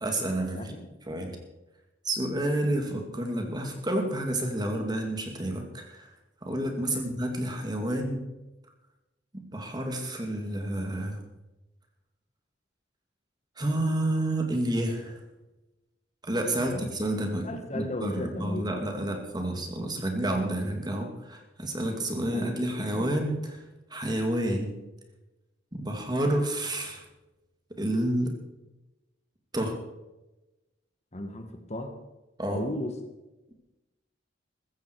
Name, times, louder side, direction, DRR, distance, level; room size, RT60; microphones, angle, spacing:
voice 1, 0.0-0.7 1.1-1.4 2.0-6.1 6.4-8.2 9.3-11.2 13.6-15.2 16.2-23.6 23.9-24.7 25.7-27.0 27.8-28.3 29.5-29.8 32.4-32.7, right 1 dB, 25° right, 4 dB, 2.5 m, -29 dB
voice 2, 0.5-0.9 6.8-7.1 16.6-16.8 17.4-18.7 22.0-23.1 31.1-32.0 32.5-33.0, left 1 dB, 40° left, 6 dB, 1.5 m, -36 dB
15.0 x 14.5 x 4.7 m, 1.0 s
head